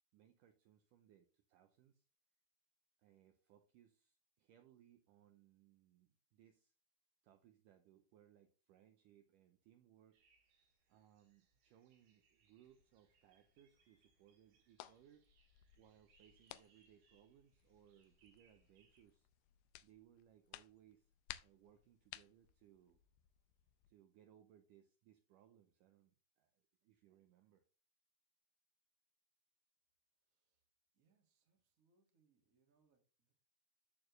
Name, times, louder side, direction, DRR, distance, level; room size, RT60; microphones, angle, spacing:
voice 1, 0.1-2.1 3.0-6.7 7.2-15.3 15.8-19.3 19.8-21.1 21.4-23.0 23.9-27.6, right 10 dB, 85° right, 6 dB, 1.9 m, -68 dB
sound 1, 10.1-19.0, right 5 dB, 60° right, 3.2 m, -77 dB
sound 2, 12.6-23.9, left 15 dB, 85° left, 2.4 m, -60 dB
voice 2, 30.1-30.7 30.9-33.3, right 4 dB, 35° right, 2 dB, 1.4 m, -80 dB
13.0 x 4.4 x 3.2 m, 0.35 s
omnidirectional pair, 4.6 m